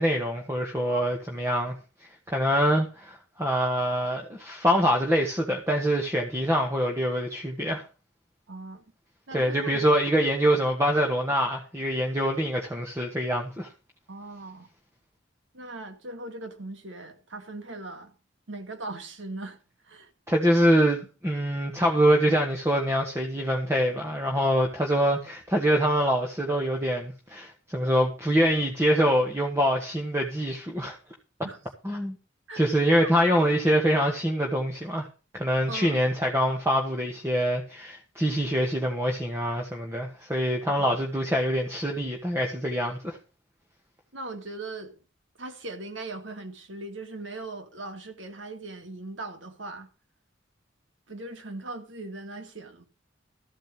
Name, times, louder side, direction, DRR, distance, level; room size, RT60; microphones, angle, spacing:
voice 1, 0.0-1.8 2.3-7.8 9.3-13.7 20.3-31.0 31.8-32.1 32.5-35.1 35.3-43.2, equal, 15° right, 1.6 m, -25 dB
voice 2, 8.5-8.8 9.3-9.8 14.1-14.7 15.5-18.1 18.5-19.6 19.8-20.1 31.4-31.6 32.5-32.7 33.0-33.1 35.7-36.0 44.1-45.0 45.4-49.9 51.1-52.8, right 2 dB, 75° right, 2.3 m, -39 dB
13.5 x 5.1 x 7.7 m
head